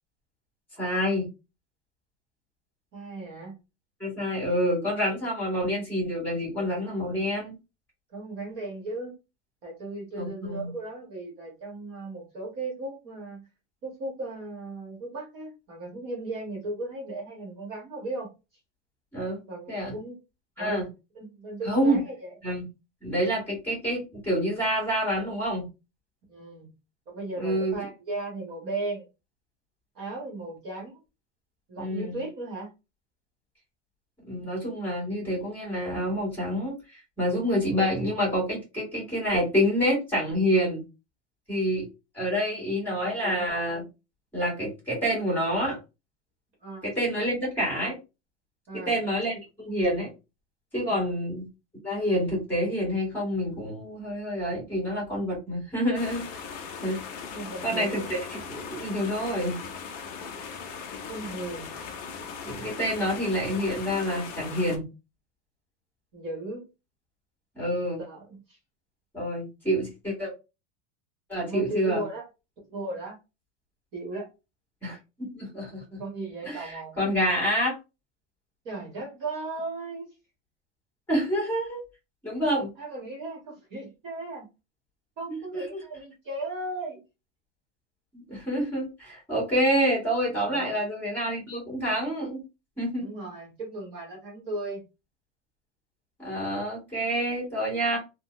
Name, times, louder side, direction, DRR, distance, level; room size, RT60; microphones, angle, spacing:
voice 1, 0.8-1.3 4.0-7.5 10.2-10.7 19.1-19.4 19.7-20.0 20.6-20.8 21.6-22.0 22.4-22.6 23.0-25.7 27.4-27.8 31.8-32.2 34.3-40.8 41.5-41.8 42.1-43.8 44.3-45.8 46.8-48.0 48.7-50.1 50.7-51.5 51.8-56.2 56.8-57.0 57.6-58.2 58.5-59.6 62.4-64.9 67.5-68.0 69.1-70.3 71.3-72.0 74.8-76.0 76.4-77.8 81.1-81.8 82.2-82.7 85.3-85.8 88.1-92.4 92.8-93.1 96.2-98.0, equal, 5° left, -5 dB, 1.6 m, -27 dB
voice 2, 2.9-3.5 8.1-9.1 9.6-13.5 13.8-18.3 19.5-20.2 20.6-22.3 26.3-26.7 27.1-29.1 29.9-31.0 31.7-32.7 42.8-43.5 46.6-46.9 48.7-49.0 50.9-51.2 57.3-58.2 61.1-61.7 66.1-66.7 68.0-68.6 71.5-72.3 72.7-73.2 73.9-74.3 76.0-77.2 78.6-80.1 82.8-84.5 85.2-87.0 90.4-90.8 93.0-94.8, right 2 dB, 35° right, -2 dB, 1.0 m, -36 dB
sound 1, 55.9-64.8, left 6 dB, 35° left, 0.4 m, -39 dB
3.7 x 2.1 x 2.4 m, 0.27 s
supercardioid pair, 170°, 36 cm